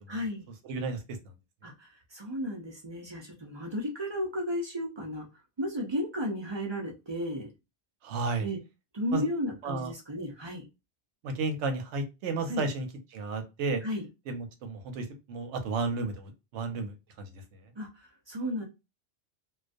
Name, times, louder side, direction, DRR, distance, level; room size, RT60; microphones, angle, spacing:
voice 1, 0.1-0.4 1.6-5.3 5.6-7.5 8.4-8.6 8.9-10.7 12.5-12.6 13.8-14.0 17.8-18.6, equal, 40° right, 0.4 m, -34 dB
voice 2, 0.6-1.0 1.7-1.8 8.0-8.5 9.1-9.3 9.6-9.9 11.2-12.9 13.1-13.8 14.3-17.4, right 3 dB, 85° right, 0.9 m, -33 dB
2.3 x 2.2 x 2.5 m
omnidirectional pair, 1.2 m